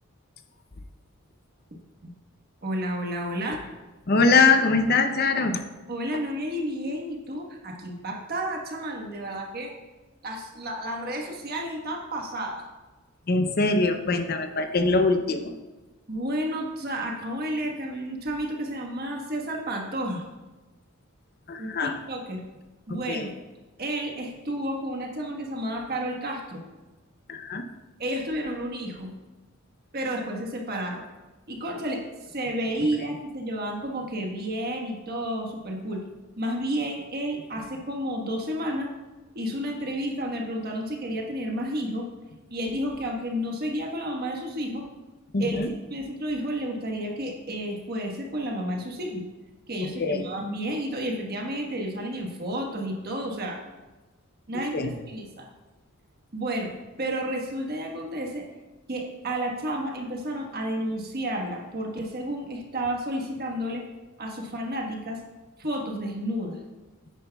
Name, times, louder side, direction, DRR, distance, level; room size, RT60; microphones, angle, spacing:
voice 1, 2.6-3.6 5.9-9.7 10.2-12.6 16.1-20.2 21.6-22.4 22.9-23.3 23.8-26.6 28.0-29.1 29.9-31.0 31.5-32.0 32.3-36.0 36.4-38.9 39.3-42.0 42.5-44.9 45.4-45.6 45.9-49.2 49.7-53.6 54.5-54.8 55.1-55.5 56.3-56.7 57.0-58.4 58.9-63.8 64.2-65.2 65.6-66.6, right 1 dB, 45° right, 1 dB, 1.4 m, -31 dB
voice 2, 4.1-5.6 13.3-15.5 21.5-22.0 22.9-23.3 27.3-27.7 45.3-45.7 49.8-50.2 54.7-54.9, left 3 dB, 45° left, 7 dB, 0.6 m, -23 dB
9.8 x 9.3 x 2.3 m, 1.2 s
head